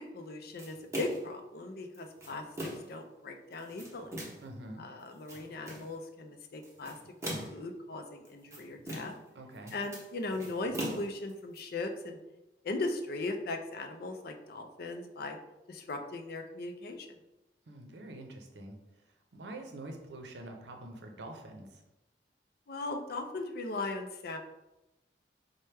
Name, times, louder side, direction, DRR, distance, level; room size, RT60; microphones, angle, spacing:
voice 1, 0.1-4.1 4.8-7.0 7.5-9.1 9.7-12.2 12.6-15.4 15.7-17.2 22.7-24.4, left 2 dB, 60° left, 5 dB, 0.4 m, -38 dB
sound 1, 0.6-1.3 1.9-3.0 3.5-4.5 5.0-5.9 6.6-7.7 8.2-9.3 9.5-11.6, right 1 dB, 15° right, 0.8 m, -40 dB
voice 2, 4.4-4.9 9.3-9.8 17.7-18.8 19.3-21.8, right 1 dB, 70° right, 3 dB, 0.6 m, -45 dB
4.3 x 2.1 x 3.3 m, 0.95 s
head